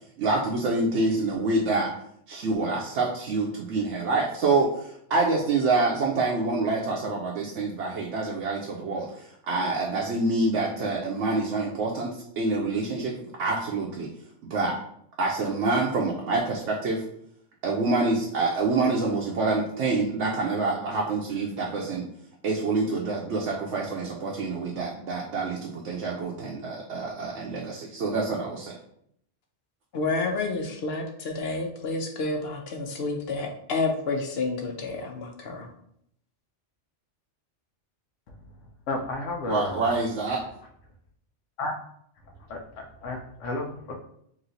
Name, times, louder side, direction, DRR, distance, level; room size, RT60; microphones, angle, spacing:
voice 1, 0.2-1.9 2.3-14.1 14.4-14.8 15.2-17.0 17.6-22.0 22.4-28.8 39.5-40.4, right 3 dB, 75° right, -2 dB, 0.9 m, -26 dB
voice 2, 29.9-35.7, left 3 dB, 60° left, 3 dB, 0.8 m, -29 dB
voice 3, 38.9-39.8 41.6-41.7 42.5-43.9, left 2 dB, 85° left, 2 dB, 1.0 m, -32 dB
3.1 x 2.8 x 3.9 m, 0.70 s
omnidirectional pair, 1.2 m